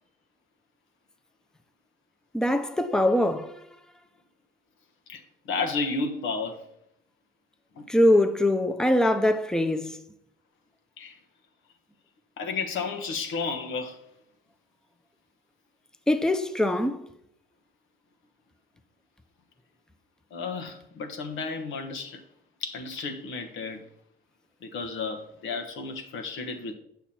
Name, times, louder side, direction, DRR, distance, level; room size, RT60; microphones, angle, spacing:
voice 1, 2.3-3.5 7.9-10.0 16.1-17.0, left 1 dB, 5° left, 0.7 m, -22 dB
voice 2, 5.1-6.6 7.7-7.8 11.0-11.2 12.4-14.0 20.3-22.2 22.6-23.8 24.6-26.7, left 4 dB, 80° left, 1.3 m, -32 dB
9.0 x 5.8 x 4.3 m
cardioid pair, 90°, 20 cm